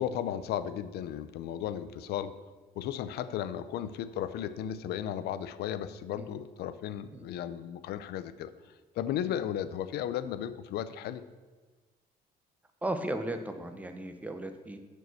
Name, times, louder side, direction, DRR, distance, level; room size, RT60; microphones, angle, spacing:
voice 1, 0.0-2.3 2.8-8.5 9.0-11.2, left 10 dB, 75° left, 14 dB, 0.6 m, -35 dB
voice 2, 12.8-14.8, right 1 dB, 10° right, 7 dB, 0.9 m, -36 dB
7.5 x 5.3 x 6.8 m, 1.3 s
cardioid pair, 110°, 17 cm